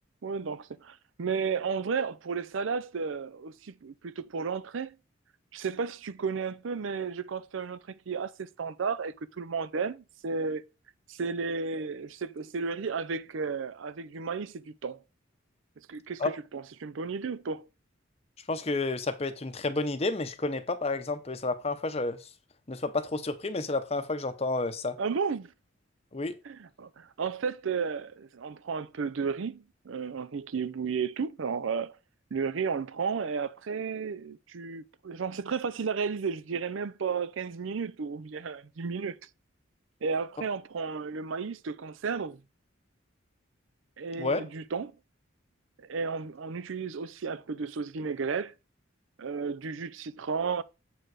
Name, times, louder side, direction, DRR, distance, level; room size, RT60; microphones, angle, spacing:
voice 1, 0.2-5.0 5.5-10.6 11.1-15.0 15.8-17.7 25.0-25.5 26.4-32.0 32.3-39.2 40.0-42.4 44.0-44.9 45.8-48.5 49.2-50.6, right 5 dB, 70° right, 0.5 m, -33 dB
voice 2, 18.5-22.2 22.7-25.0 26.1-26.3 44.2-44.4, left 3 dB, 30° left, 0.7 m, -30 dB
7.5 x 4.7 x 4.7 m
head